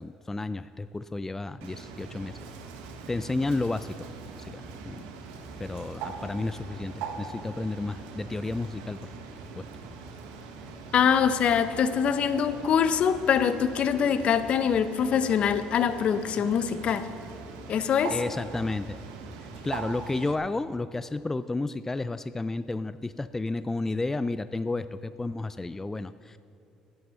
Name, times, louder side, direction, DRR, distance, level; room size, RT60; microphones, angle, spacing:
voice 1, 0.0-2.3 3.1-3.9 4.4-5.0 5.6-9.1 9.5-9.7 18.1-19.0 19.4-26.4, left 2 dB, 15° left, 13 dB, 0.3 m, -32 dB
Bird, 1.6-20.4, right 4 dB, 85° right, 1.2 m, -41 dB
voice 2, 10.9-17.1 17.7-18.2, left 7 dB, 55° left, 11 dB, 0.8 m, -24 dB
11.0 x 9.4 x 6.8 m, 3.0 s
supercardioid pair, 70°, 2 cm